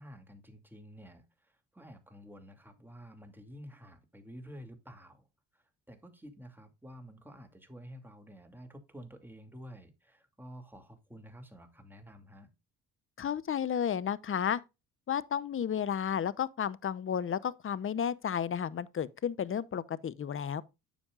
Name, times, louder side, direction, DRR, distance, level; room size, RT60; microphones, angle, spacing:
voice 1, 0.0-5.3 5.5-12.5, equal, 5° right, 2.5 m, -50 dB
voice 2, 13.2-14.6 15.1-20.6, left 8 dB, 35° left, 0.8 m, -32 dB
9.9 x 7.1 x 2.4 m
supercardioid pair, 70°, 37 cm